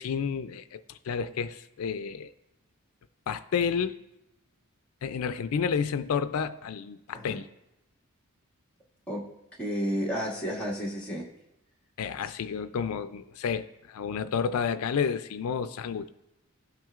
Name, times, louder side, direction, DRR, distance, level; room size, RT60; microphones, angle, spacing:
voice 1, 0.0-2.3 3.3-4.0 5.0-7.5 12.0-16.1, left 6 dB, 75° left, 0.4 m, -30 dB
voice 2, 9.6-11.3, equal, 5° left, 1.8 m, -31 dB
16.5 x 6.0 x 2.4 m
head